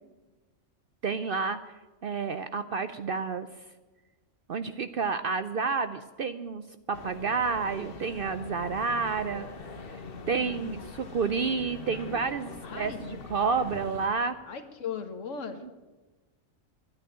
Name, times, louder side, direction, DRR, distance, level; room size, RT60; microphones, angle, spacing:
voice 1, 1.0-1.7 2.0-3.5 4.5-9.5 10.3-14.3 15.6-15.8, right 5 dB, 60° right, 11 dB, 0.6 m, -30 dB
sound 1, 6.9-14.1, left 4 dB, 45° left, 1.1 m, -43 dB
voice 2, 10.3-11.0 12.6-13.0 14.5-15.6, left 6 dB, 70° left, 7 dB, 1.6 m, -38 dB
11.5 x 9.6 x 8.9 m, 1.2 s
omnidirectional pair, 1.4 m